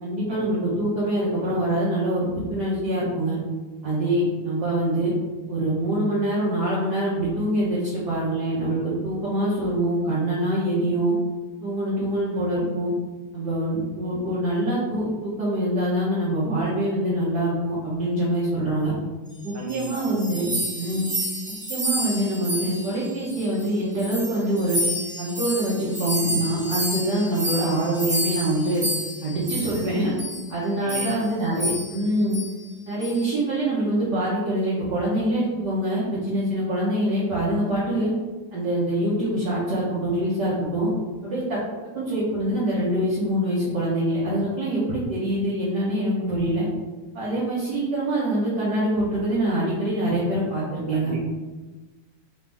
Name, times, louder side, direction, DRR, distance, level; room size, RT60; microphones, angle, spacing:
voice 1, 0.0-3.4 3.8-5.1 5.5-11.1 11.6-12.9 13.3-18.9 19.4-21.1 21.7-24.8 25.2-28.8 29.2-30.1 30.5-32.4 32.9-38.1 38.5-40.9 41.2-41.6 41.9-46.7 47.1-51.1, right 1 dB, 60° right, -8 dB, 1.5 m, -24 dB
sound 1, 19.4-23.7 23.9-29.9 30.2-30.4 30.9-31.2 31.6-32.0 32.3-32.5 33.0-33.3, equal, 20° right, 0.8 m, -30 dB
voice 2, 19.5-20.1 30.8-31.2 50.9-51.2, right 3 dB, 80° right, -2 dB, 1.8 m, -36 dB
4.0 x 2.9 x 3.4 m, 1.2 s
omnidirectional pair, 2.3 m